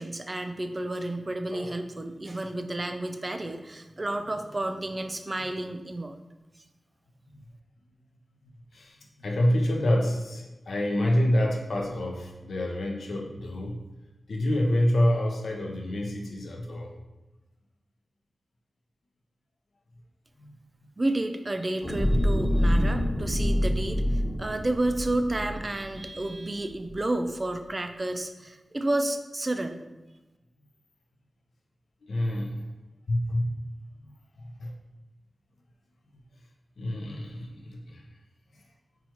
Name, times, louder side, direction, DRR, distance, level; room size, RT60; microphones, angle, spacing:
voice 1, 0.0-6.2 21.0-29.8, right 1 dB, 35° right, 6 dB, 0.3 m, -31 dB
voice 2, 1.5-1.8 7.3-7.4 8.7-13.8 14.3-16.9 20.4-20.5 32.0-32.5 33.1-33.7 34.0-34.7 36.1-36.2 36.8-38.0, left 1 dB, 80° left, 0 dB, 0.5 m, -27 dB
Echoing Bubbling Under Water Short, 21.8-26.3 26.8-26.9, equal, 15° left, 1.1 m, -26 dB
4.3 x 2.3 x 2.9 m, 1.1 s
cardioid pair, 50°, 0 cm